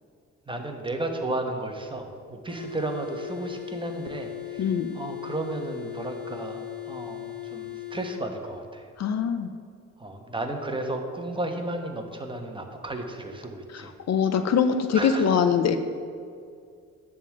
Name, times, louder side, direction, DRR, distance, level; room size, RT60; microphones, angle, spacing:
voice 1, 0.5-8.9 10.0-13.9 14.9-15.4, right 2 dB, 15° right, 4 dB, 1.1 m, -33 dB
sound 1, 2.5-8.2, left 14 dB, 5° left, 1.3 m, -38 dB
voice 2, 4.6-5.0 9.0-9.5 13.7-15.8, left 7 dB, 60° left, 9 dB, 0.6 m, -23 dB
10.0 x 3.7 x 7.4 m, 2.2 s
cardioid pair, 95°, 30 cm